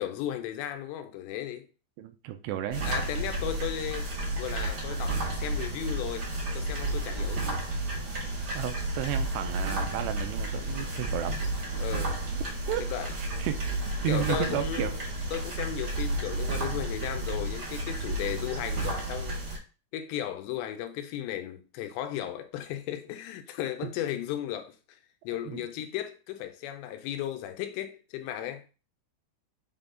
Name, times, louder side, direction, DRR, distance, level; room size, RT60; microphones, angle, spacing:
voice 1, 0.0-1.7 2.8-4.1 4.4-6.3 6.5-7.6 8.1-8.3 11.8-12.2 12.8-13.1 14.1-15.0 15.3-19.4 19.9-25.0 25.2-28.7, left 11 dB, 80° left, 2.9 m, -35 dB
voice 2, 2.0-2.9 8.5-11.4 12.7-12.8 13.1-15.0 23.8-23.9 25.5-25.6, right 11 dB, 85° right, 2.6 m, -33 dB
sound 1, 2.7-19.6, right 2 dB, 50° right, 1.2 m, -32 dB
8.1 x 3.8 x 3.8 m
omnidirectional pair, 5.3 m